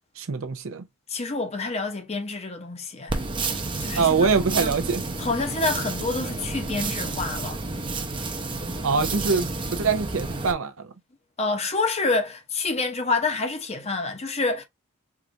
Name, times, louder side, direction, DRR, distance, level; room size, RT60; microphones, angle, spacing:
voice 1, 0.2-0.8 4.0-5.0 8.8-10.9, right 5 dB, 70° right, 0.6 m, -24 dB
voice 2, 1.1-3.2 3.8-4.3 4.6-4.7 5.2-7.6 11.4-14.6, left 3 dB, 30° left, 0.8 m, -27 dB
sound 1, 3.1-10.5, right 3 dB, 25° right, 0.7 m, -30 dB
4.7 x 2.5 x 2.6 m
head